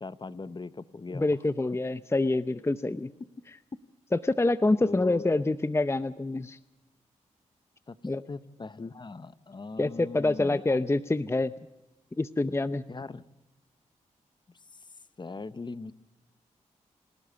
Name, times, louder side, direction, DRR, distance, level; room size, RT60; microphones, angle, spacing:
voice 1, 0.0-1.2 4.8-5.3 7.9-8.0 8.3-10.8 12.9-13.3 15.2-15.9, left 3 dB, 35° left, 15 dB, 1.0 m, -39 dB
voice 2, 1.1-3.1 4.1-6.6 8.0-8.2 9.8-11.5 12.2-12.8, left 2 dB, 20° left, 13 dB, 0.7 m, -26 dB
28.0 x 12.5 x 8.2 m, 1.0 s
cardioid pair, 55°, 13 cm